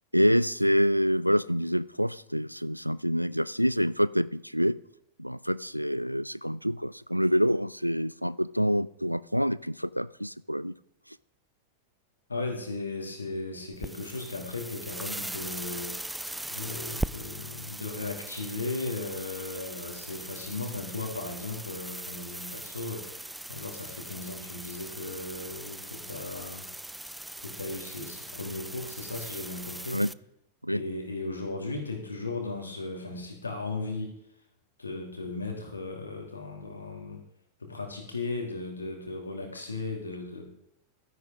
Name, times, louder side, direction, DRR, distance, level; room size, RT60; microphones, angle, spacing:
voice 1, 0.1-4.8 5.2-10.7 29.9-30.1 30.6-30.8, equal, 90° right, 19 dB, 0.3 m, -26 dB
voice 2, 12.3-16.0 16.5-26.6 27.4-30.0 30.7-34.1 34.8-37.2 37.6-40.4, left 3 dB, 80° left, 2 dB, 2.4 m, -36 dB
sound 1, 13.7-30.1, right 1 dB, 5° right, 0.3 m, -40 dB
12.5 x 10.5 x 3.6 m, 0.76 s
figure-of-eight pair, 90°, 0 cm